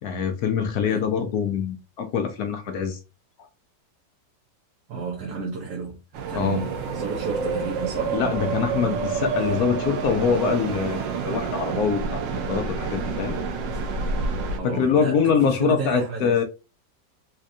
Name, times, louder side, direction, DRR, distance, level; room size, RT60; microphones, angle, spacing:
voice 1, 0.0-3.0 6.3-6.6 8.1-13.4 14.6-16.4, left 6 dB, 70° left, 1.0 m, -24 dB
voice 2, 4.9-6.0 6.3-8.2 14.6-16.4, right 4 dB, 70° right, 1.3 m, -32 dB
sound 1, 6.1-14.6, right 5 dB, 90° right, 1.3 m, -28 dB
4.2 x 2.5 x 2.6 m
omnidirectional pair, 1.9 m